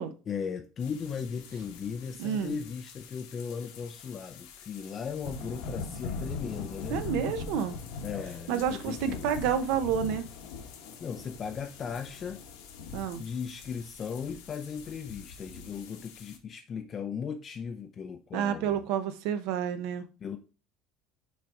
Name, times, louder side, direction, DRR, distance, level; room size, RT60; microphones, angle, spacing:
voice 1, 0.3-7.0 8.0-9.3 11.0-12.4 13.2-18.8 20.2-20.4, left 6 dB, 25° left, 0.4 m, -37 dB
sound 1, 0.8-16.4, left 4 dB, 90° left, 1.5 m, -42 dB
voice 2, 2.2-2.6 6.9-7.8 8.5-10.2 12.9-13.2 18.3-20.0, right 8 dB, 65° right, 0.7 m, -29 dB
6.3 x 3.9 x 4.7 m
cardioid pair, 170°, 0 cm